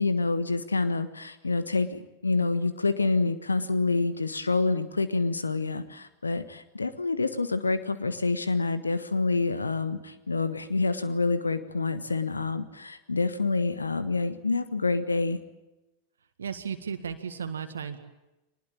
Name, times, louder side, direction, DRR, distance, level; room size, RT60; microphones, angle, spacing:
voice 1, 0.0-1.9 2.2-15.4, left 3 dB, 80° left, 13 dB, 1.4 m, -27 dB
voice 2, 16.4-18.0, right 7 dB, 70° right, 8 dB, 1.8 m, -34 dB
23.5 x 20.5 x 8.8 m, 0.99 s
figure-of-eight pair, 90°, 0 cm